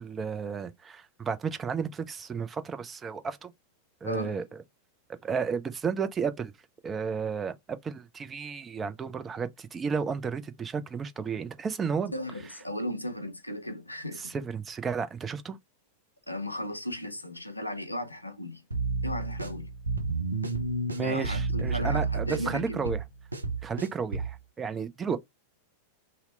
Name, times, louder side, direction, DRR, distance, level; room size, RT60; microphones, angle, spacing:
voice 1, 0.0-3.5 4.0-4.4 5.2-6.5 6.8-12.1 14.2-15.6 20.9-23.0 23.6-25.2, right 6 dB, 20° right, 0.4 m, -32 dB
voice 2, 4.0-4.4 12.1-14.3 16.3-18.6 19.0-19.7 21.0-22.9, left 1 dB, 85° left, 0.5 m, -36 dB
sound 1, 18.7-24.4, right 3 dB, 80° right, 0.4 m, -31 dB
2.8 x 2.0 x 3.7 m
figure-of-eight pair, 90°, 0 cm